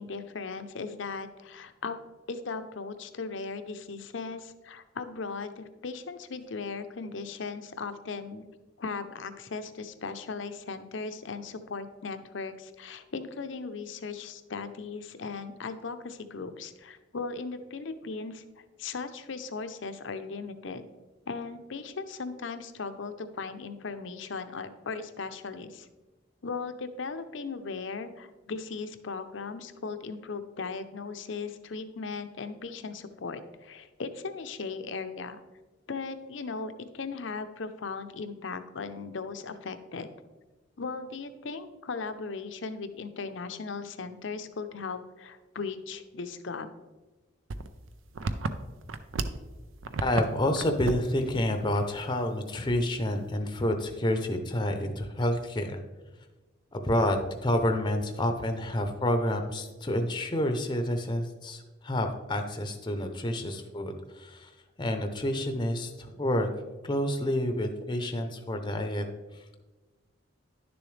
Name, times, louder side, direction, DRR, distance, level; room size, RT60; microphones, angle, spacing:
voice 1, 0.0-2.0 2.3-8.4 8.8-18.4 18.8-20.9 21.3-25.9 26.4-35.4 35.9-40.1 40.8-46.7, left 4 dB, 70° left, 10 dB, 0.6 m, -37 dB
sound 1, 47.5-49.5 49.8-50.3 50.5-51.0 51.3-51.5 51.9-52.0 52.7-53.1, right 3 dB, 80° right, 0.5 m, -33 dB
voice 2, 50.0-55.8 56.7-64.5 64.8-66.5 66.8-69.0 69.3-69.6, left 1 dB, 25° left, 6 dB, 0.6 m, -29 dB
11.0 x 6.9 x 3.3 m, 1.2 s
head